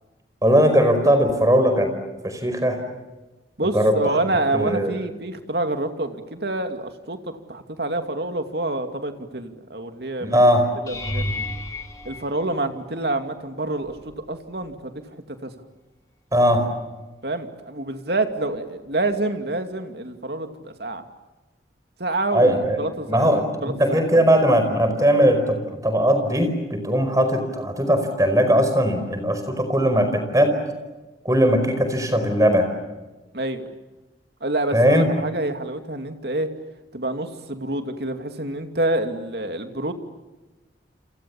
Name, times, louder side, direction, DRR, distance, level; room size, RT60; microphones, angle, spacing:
voice 1, 0.4-1.9 2.2-2.8 3.6-4.2 4.5-4.9 10.2-10.7 16.3-16.7 22.3-22.8 23.1-23.5 23.8-30.6 31.2-32.7 34.7-35.1, equal, 20° right, 7 dB, 4.8 m, -19 dB
voice 2, 3.6-10.4 10.8-11.4 12.0-15.0 15.3-15.5 17.2-21.0 22.0-23.3 23.6-24.3 33.3-33.6 34.4-36.5 36.9-39.9, right 2 dB, 65° right, 6 dB, 2.6 m, -27 dB
sound 1, 10.9-13.1 13.8-14.3 14.6-14.8 19.1-19.2, left 1 dB, 20° left, 3.7 m, -32 dB
29.5 x 27.5 x 7.2 m, 1.1 s
head